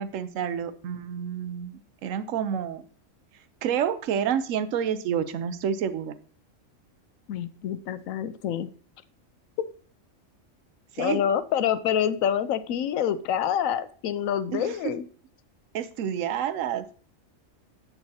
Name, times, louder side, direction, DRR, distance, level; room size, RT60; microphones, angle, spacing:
voice 1, 0.0-2.8 3.6-6.2 10.9-11.2 14.5-14.9 15.7-16.9, right 8 dB, 75° right, 13 dB, 1.0 m, -29 dB
voice 2, 7.3-8.7 11.0-15.0, left 9 dB, 90° left, 14 dB, 1.0 m, -27 dB
9.0 x 6.6 x 2.7 m, 0.43 s
omnidirectional pair, 1.3 m